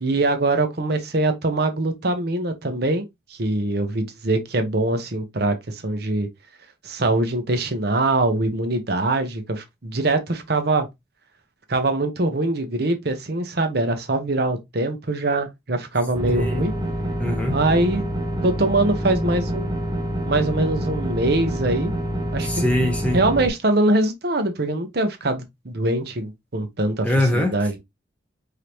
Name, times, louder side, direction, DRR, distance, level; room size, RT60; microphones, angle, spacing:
voice 1, 0.0-3.0 3.3-6.3 6.8-10.9 11.7-16.7 17.5-18.1 18.4-19.7 20.3-21.9 22.3-22.6 23.1-27.1 27.3-27.8, right 2 dB, 55° right, 0.9 m, -23 dB
sound 1, 16.1-23.5, equal, 20° right, 0.9 m, -27 dB
voice 2, 16.3-16.6 17.2-17.6 22.4-23.2 27.0-27.6, left 1 dB, 5° left, 0.9 m, -22 dB
5.0 x 2.8 x 3.0 m
head